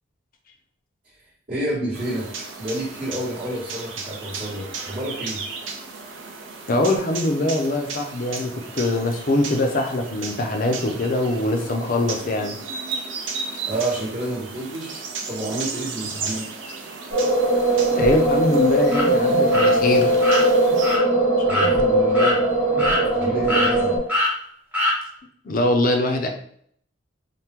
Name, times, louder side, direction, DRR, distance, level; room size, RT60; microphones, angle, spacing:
voice 1, 1.5-5.4 13.7-16.5 21.5-22.4 23.1-23.9, right 1 dB, 40° right, -10 dB, 1.0 m, -29 dB
sound 1, 1.9-21.0, right 4 dB, 65° right, 0.6 m, -35 dB
voice 2, 6.7-12.6 17.9-20.2 25.4-26.3, left 2 dB, 45° left, 4 dB, 0.5 m, -22 dB
sound 2, 17.1-24.0, right 1 dB, 85° right, 1.3 m, -19 dB
sound 3, 18.9-19.0 19.5-19.7 20.2-20.4 20.8-21.0 21.5-21.7 22.1-22.4 22.8-23.2 23.5-23.7 24.1-24.3 24.7-25.0, left 1 dB, 10° right, 0.7 m, -22 dB
3.4 x 2.1 x 2.9 m, 0.63 s
head